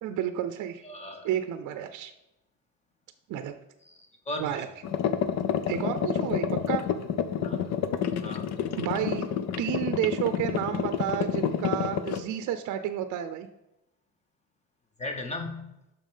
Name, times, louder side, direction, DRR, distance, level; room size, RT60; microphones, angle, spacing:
voice 1, 0.0-0.8 1.2-2.1 3.3-3.6 4.4-4.7 5.7-6.9 8.8-9.3 9.6-13.5, right 10 dB, 65° right, 9 dB, 0.6 m, -31 dB
voice 2, 0.8-1.3 3.8-4.6 7.4-7.6 8.2-8.5 15.0-15.7, left 2 dB, 20° left, 4 dB, 1.0 m, -37 dB
sound 1, 4.8-12.2, left 8 dB, 55° left, 0.6 m, -29 dB
7.4 x 6.0 x 5.4 m, 0.90 s
cardioid pair, 175°, 33 cm